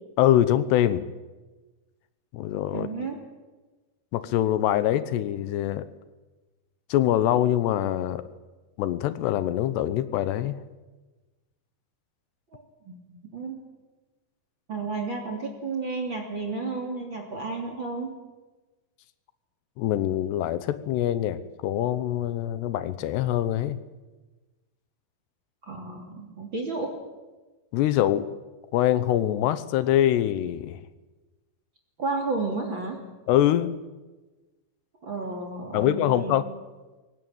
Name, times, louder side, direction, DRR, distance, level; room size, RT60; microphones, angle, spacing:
voice 1, 0.2-1.0 2.3-2.9 4.1-5.9 6.9-8.2 8.8-10.6 19.8-23.8 27.7-28.3 28.7-30.8 33.3-33.7 35.7-36.5, left 12 dB, 80° left, 14 dB, 2.9 m, -24 dB
voice 2, 2.7-3.2 12.5-13.0 13.3-13.6 14.7-18.1 25.6-27.0 32.0-33.0 35.0-36.4, right 3 dB, 30° right, 3 dB, 3.1 m, -32 dB
23.5 x 18.5 x 8.9 m, 1.2 s
omnidirectional pair, 5.1 m